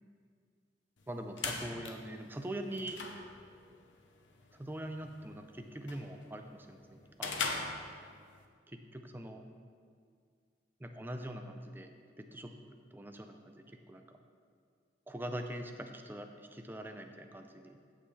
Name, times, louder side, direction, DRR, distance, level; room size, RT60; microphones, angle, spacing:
sound 1, 1.0-8.4, left 4 dB, 85° left, 0.8 m, -42 dB
voice 1, 1.1-3.0 4.5-7.5 8.7-9.4 10.8-12.5 12.9-14.0 15.1-17.8, right 1 dB, 10° right, 5 dB, 0.5 m, -43 dB
14.5 x 5.5 x 3.3 m, 2.1 s
head